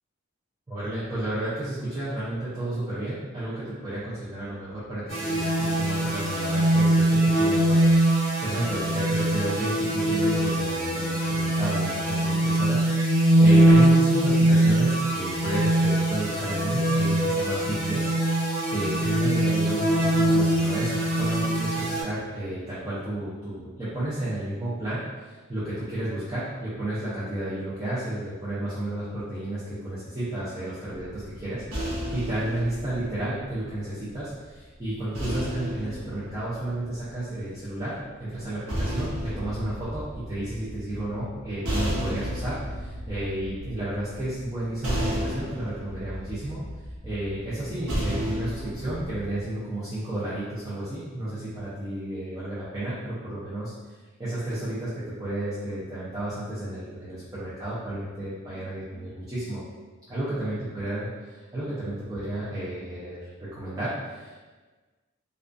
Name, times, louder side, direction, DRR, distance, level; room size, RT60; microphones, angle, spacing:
voice 1, 0.7-46.6 47.0-53.7 54.2-59.6 60.1-64.4, right 1 dB, 15° right, -12 dB, 0.5 m, -32 dB
sound 1, 5.1-22.0, right 1 dB, 40° right, 1.4 m, -22 dB
sound 2, 31.0-34.2 35.1-37.4 38.4-49.4, equal, 85° right, 0.8 m, -33 dB
2.3 x 2.3 x 2.4 m, 1.3 s
head